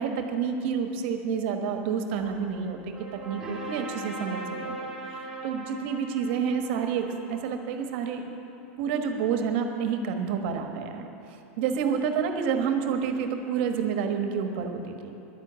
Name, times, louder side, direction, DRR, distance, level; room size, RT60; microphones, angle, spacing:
voice 1, 0.0-3.0 3.2-8.2 8.8-11.1 11.6-15.2, right 6 dB, 55° right, 5 dB, 1.3 m, -29 dB
sound 1, 2.2-8.1, right 2 dB, 5° right, 2.0 m, -40 dB
11.0 x 10.5 x 8.1 m, 2.9 s
supercardioid pair, 150°, 7 cm